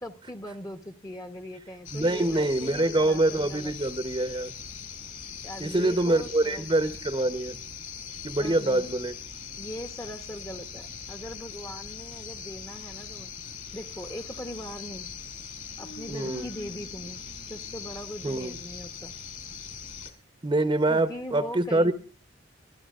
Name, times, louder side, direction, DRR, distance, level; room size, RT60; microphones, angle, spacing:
voice 1, 0.0-3.9 5.4-6.7 8.4-8.9 9.6-13.3 13.7-15.1 15.8-17.2 17.5-19.1 20.9-21.9, equal, 20° left, 7 dB, 1.0 m, -40 dB
sound 1, 1.8-20.1, left 7 dB, 45° left, 2.8 m, -41 dB
voice 2, 1.9-4.5 5.6-7.6 8.2-9.1 16.1-16.5 18.2-18.5 20.4-21.9, right 2 dB, 25° right, 11 dB, 0.8 m, -25 dB
Human voice, 13.7-14.6 15.8-18.5, left 1 dB, 80° left, 3.2 m, -49 dB
23.5 x 13.5 x 2.4 m, 0.36 s
head